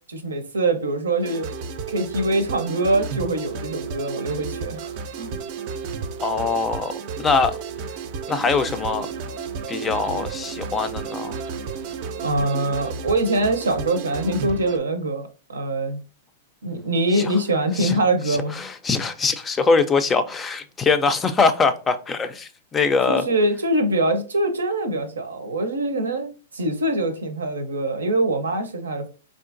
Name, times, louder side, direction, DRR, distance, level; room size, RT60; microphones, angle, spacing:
voice 1, 0.1-1.5 1.9-5.4 12.2-16.0 16.6-18.6 23.1-29.1, right 1 dB, 90° right, 0.6 m, -24 dB
sound 1, 1.2-14.8, right 5 dB, 45° right, 0.4 m, -32 dB
voice 2, 6.2-6.9 7.2-7.6 8.3-9.1 9.7-11.4 17.1-17.2 17.8-18.0 18.3-23.3, left 4 dB, 15° left, 0.4 m, -22 dB
3.6 x 2.4 x 2.5 m
hypercardioid pair, 125°, 0 cm